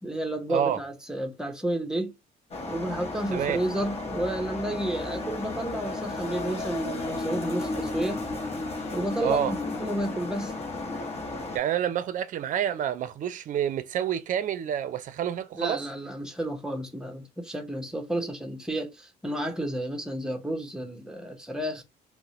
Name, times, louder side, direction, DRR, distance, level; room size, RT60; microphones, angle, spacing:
voice 1, 0.0-2.1 2.7-8.3 8.9-10.5 15.5-21.8, right 1 dB, 5° right, 0.7 m, -31 dB
sound 1, 2.5-11.6, left 2 dB, 35° left, 1.0 m, -33 dB
voice 2, 9.2-9.5 11.5-15.8, right 10 dB, 50° right, 0.5 m, -28 dB
3.8 x 2.1 x 2.9 m
cardioid pair, 110°, 17 cm